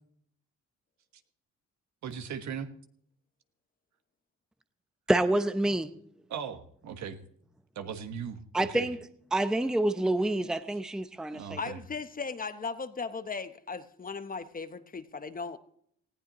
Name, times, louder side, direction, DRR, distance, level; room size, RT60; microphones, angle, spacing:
voice 1, 2.0-2.7 5.6-5.7 6.3-7.2 7.7-8.9 11.3-11.8, right 7 dB, 65° right, 1.4 m, -38 dB
voice 2, 5.1-5.9 8.5-9.0 9.3-11.6, right 1 dB, ahead, 0.6 m, -27 dB
voice 3, 11.6-15.6, left 4 dB, 30° left, 0.9 m, -37 dB
19.0 x 15.5 x 3.0 m
cardioid pair, 90°, 30 cm